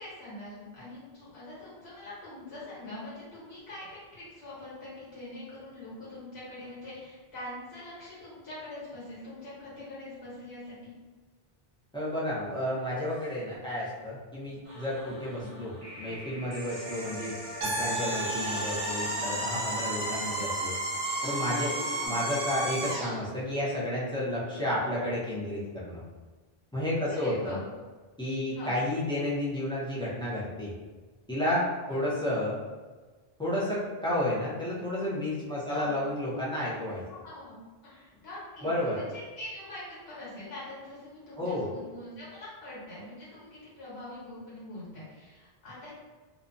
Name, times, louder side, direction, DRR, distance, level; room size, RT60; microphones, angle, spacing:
voice 1, 0.0-10.9 15.3-15.5 19.1-19.3 22.0-22.2 27.0-27.6 28.5-28.7 35.7-35.9 37.1-37.6 37.8-45.9, left 1 dB, 85° left, -10 dB, 1.3 m, -44 dB
voice 2, 11.9-17.4 17.6-20.8 21.2-21.8 22.1-26.0 26.7-27.6 28.2-30.7 31.3-32.6 33.4-37.0 38.6-39.0 41.4-41.7, left 1 dB, 5° left, -8 dB, 0.4 m, -31 dB
sound 1, 14.6-22.1, left 1 dB, 35° right, 0.9 m, -42 dB
sound 2, 17.6-23.2, right 2 dB, 85° right, 1.0 m, -32 dB
2.6 x 2.1 x 2.5 m, 1.3 s
omnidirectional pair, 1.0 m